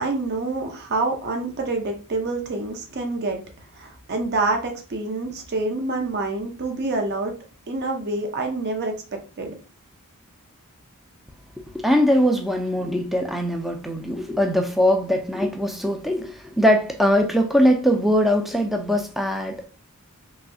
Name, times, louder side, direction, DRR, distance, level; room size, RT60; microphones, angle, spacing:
voice 1, 0.0-3.4 3.7-7.4 7.7-9.6, right 2 dB, 50° right, 0.6 m, -27 dB
voice 2, 11.7-19.6, equal, ahead, 0.3 m, -21 dB
3.1 x 2.7 x 2.6 m
head